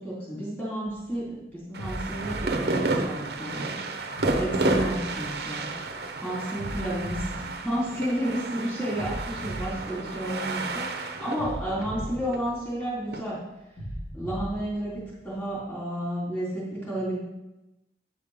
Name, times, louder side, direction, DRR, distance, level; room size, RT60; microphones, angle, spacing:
voice 1, 0.0-3.8 4.4-5.7 6.2-13.4 14.1-17.2, right 1 dB, 10° left, -8 dB, 3.1 m, -31 dB
sound 1, 0.8-1.2 1.8-3.6 4.2-6.0 6.6-8.4 9.0-10.8 11.4-13.2 13.8-15.6, equal, 30° left, 2.5 m, -38 dB
sound 2, 1.7-13.2, right 2 dB, 65° right, 0.9 m, -31 dB
9.3 x 5.1 x 5.6 m, 1.0 s
head